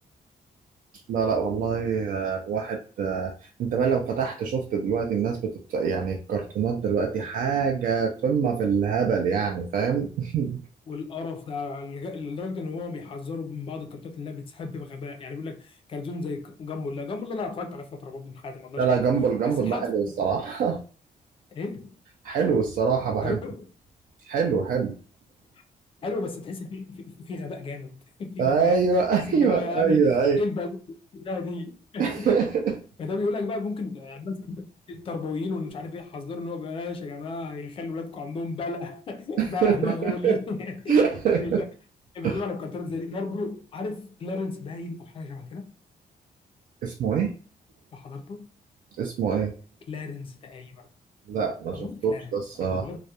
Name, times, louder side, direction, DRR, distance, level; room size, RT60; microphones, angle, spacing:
voice 1, 1.1-3.3 3.6-10.6 18.8-20.8 22.2-23.4 24.2-25.0 28.4-30.4 32.0-32.8 39.4-40.3 40.9-41.6 42.2-42.4 46.8-47.3 49.0-49.5 51.3-52.9, right 6 dB, 65° right, 0.4 m, -24 dB
voice 2, 10.9-19.0 19.4-19.9 21.5-21.9 23.2-23.7 26.0-28.8 29.3-32.3 33.0-41.0 41.3-41.6 42.1-45.7 47.9-48.5 49.9-50.8 51.7-52.3 52.6-53.0, left 3 dB, 35° left, 0.4 m, -34 dB
2.3 x 2.0 x 2.8 m
wide cardioid pair, 175°, 16 cm